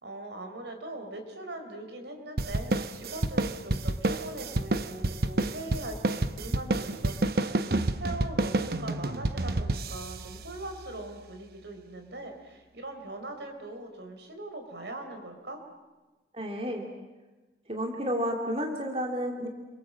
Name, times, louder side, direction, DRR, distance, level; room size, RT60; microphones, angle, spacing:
voice 1, 0.0-15.6, right 1 dB, 80° right, 5 dB, 4.4 m, -41 dB
sound 1, 2.4-11.2, right 2 dB, 60° right, 1.0 m, -30 dB
voice 2, 16.3-16.9 17.7-19.5, equal, 35° right, 2 dB, 2.6 m, -31 dB
29.5 x 23.0 x 7.6 m, 1.2 s
head